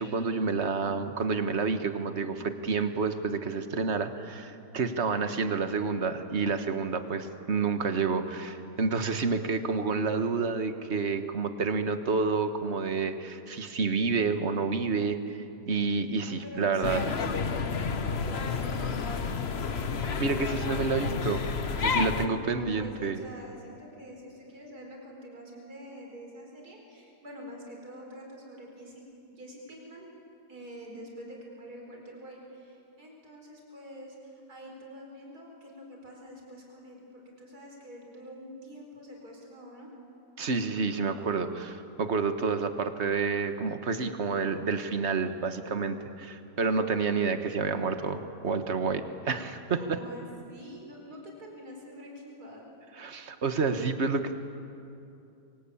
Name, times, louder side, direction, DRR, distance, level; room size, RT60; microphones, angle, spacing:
voice 1, 0.0-15.2 15.7-17.0 20.2-21.4 21.8-23.2 40.4-50.0 53.0-54.4, right 4 dB, 40° right, 8 dB, 1.6 m, -29 dB
voice 2, 16.3-19.5 22.2-29.0 29.3-30.1 30.5-39.9 49.8-52.6, equal, 55° right, 0 dB, 5.2 m, -46 dB
sound 1, 16.8-22.3, left 5 dB, 40° left, 1.2 m, -30 dB
27.5 x 24.5 x 8.7 m, 2.7 s
omnidirectional pair, 1.9 m